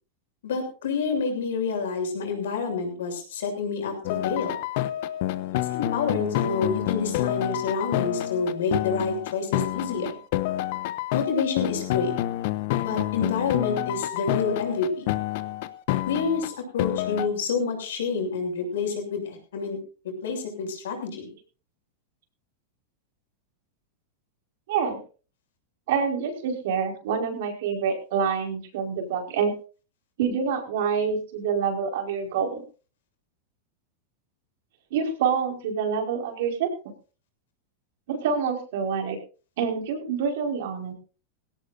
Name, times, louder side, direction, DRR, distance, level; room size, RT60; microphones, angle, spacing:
voice 1, 0.4-3.9 4.2-4.6 5.7-10.1 11.1-12.1 12.8-15.1 16.1-19.8 20.2-21.3, left 5 dB, 85° left, 4 dB, 7.0 m, -28 dB
sound 1, 4.0-17.3, left 14 dB, 60° left, 1.1 m, -28 dB
voice 2, 24.7-25.0 25.9-29.5 30.2-32.6 34.9-36.9 38.1-39.2 39.6-40.9, right 6 dB, 70° right, 3 dB, 5.0 m, -27 dB
18.5 x 17.0 x 2.7 m, 0.36 s
supercardioid pair, 125°, 0 cm